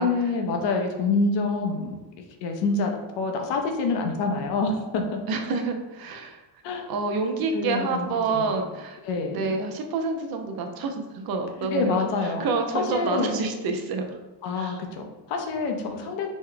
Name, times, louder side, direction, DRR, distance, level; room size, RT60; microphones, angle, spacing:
voice 1, 0.0-1.9 2.4-5.2 6.6-6.9 7.5-8.5 9.0-9.5 11.7-12.4 12.7-13.4 14.4-16.3, left 3 dB, 85° left, 3 dB, 0.7 m, -27 dB
voice 2, 5.3-6.4 6.9-9.0 9.3-14.2 14.5-14.8, right 4 dB, 55° right, 5 dB, 0.6 m, -28 dB
3.0 x 2.2 x 3.7 m, 1.1 s
cardioid pair, 100°, 42 cm